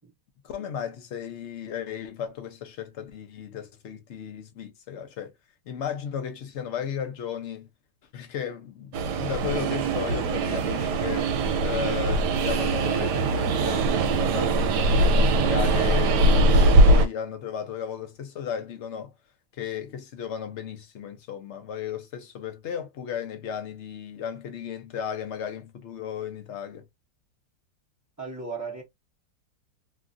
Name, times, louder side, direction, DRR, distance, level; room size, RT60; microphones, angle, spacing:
voice 1, 0.4-5.3 5.7-7.7 8.1-11.3 11.6-14.8 15.2-19.1 19.6-26.8, left 8 dB, 65° left, 0.7 m, -35 dB
Train, 8.9-17.1, right 2 dB, 80° right, 1.2 m, -21 dB
voice 2, 28.2-28.8, right 4 dB, 15° right, 0.6 m, -35 dB
3.1 x 2.4 x 2.4 m
omnidirectional pair, 1.8 m